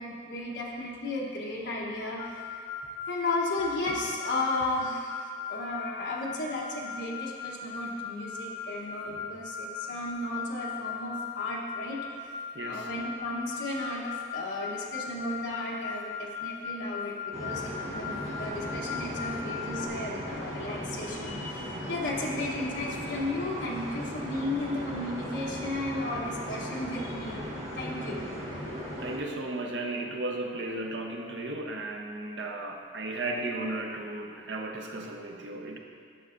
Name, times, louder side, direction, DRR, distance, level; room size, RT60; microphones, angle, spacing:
voice 1, 0.0-2.6 3.1-12.1 12.6-27.4 27.7-28.3, left 2 dB, 70° left, -3 dB, 0.9 m, -34 dB
sound 1, 2.2-19.9, left 6 dB, 30° left, 0.9 m, -39 dB
voice 2, 12.5-12.9 29.0-35.8, right 2 dB, 75° right, 2 dB, 0.7 m, -35 dB
sound 2, 17.3-29.2, equal, 35° right, 1.4 m, -37 dB
11.0 x 6.6 x 2.5 m, 2.3 s
head